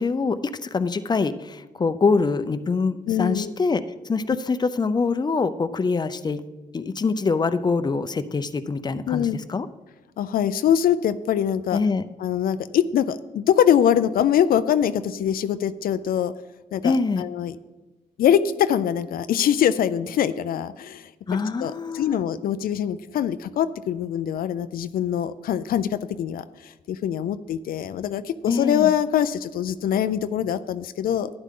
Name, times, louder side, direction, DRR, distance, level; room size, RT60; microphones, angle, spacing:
voice 1, 0.0-3.8 4.1-6.4 6.7-9.7 11.7-12.0 16.8-17.3 21.3-22.2 28.5-28.9, left 4 dB, 30° left, 11 dB, 0.6 m, -24 dB
voice 2, 3.1-3.5 9.1-9.4 10.2-11.8 12.2-16.3 16.7-17.6 18.2-31.3, left 9 dB, 80° left, 12 dB, 0.4 m, -23 dB
12.0 x 9.8 x 3.7 m, 1.1 s
cardioid pair, 85°, 15 cm